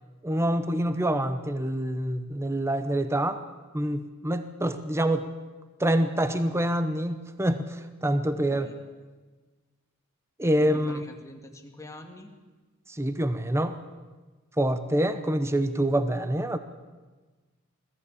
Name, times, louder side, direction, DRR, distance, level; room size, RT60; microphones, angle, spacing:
voice 1, 0.2-3.4 3.7-5.3 5.8-8.7 10.4-11.0 12.9-13.8 14.6-16.6, right 1 dB, 10° right, 10 dB, 0.8 m, -26 dB
voice 2, 8.3-8.8 10.6-12.3, left 1 dB, 15° left, 3 dB, 2.1 m, -45 dB
21.5 x 14.0 x 8.5 m, 1.3 s
head